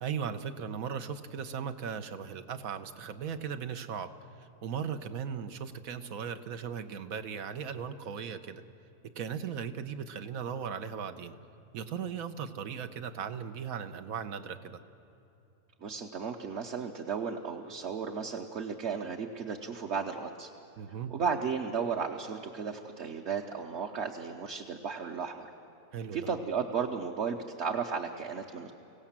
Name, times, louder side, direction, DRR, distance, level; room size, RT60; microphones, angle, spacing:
voice 1, 0.0-4.1 4.4-8.6 9.2-11.3 11.7-14.8 20.8-21.1 25.9-26.3, right 7 dB, 85° right, 10 dB, 1.3 m, -37 dB
voice 2, 15.8-20.5 21.1-25.5 26.1-28.7, right 6 dB, 55° right, 1 dB, 1.2 m, -34 dB
25.0 x 16.5 x 7.4 m, 2.9 s
omnidirectional pair, 1.4 m